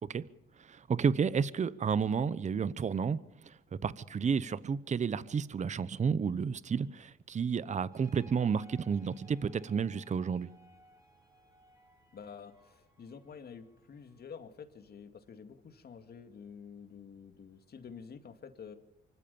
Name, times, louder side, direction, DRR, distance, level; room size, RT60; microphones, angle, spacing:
voice 1, 0.6-10.5, right 6 dB, 35° right, 0.9 m, -31 dB
sound 1, 7.9-14.3, right 1 dB, 15° right, 7.7 m, -61 dB
voice 2, 12.1-18.8, left 6 dB, 50° left, 2.4 m, -49 dB
25.0 x 14.5 x 7.1 m
cardioid pair, 90°, 20 cm